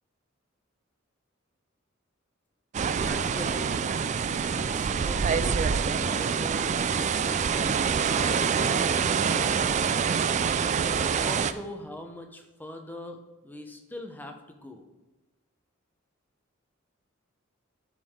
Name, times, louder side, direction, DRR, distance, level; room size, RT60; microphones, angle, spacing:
sound 1, 2.7-11.5, right 6 dB, 35° right, 0.3 m, -26 dB
voice 1, 2.8-3.9 4.6-6.7 7.5-7.7 8.0-9.6 10.9-14.8, left 1 dB, 10° left, 4 dB, 0.8 m, -41 dB
11.5 x 5.3 x 3.7 m, 1.1 s
head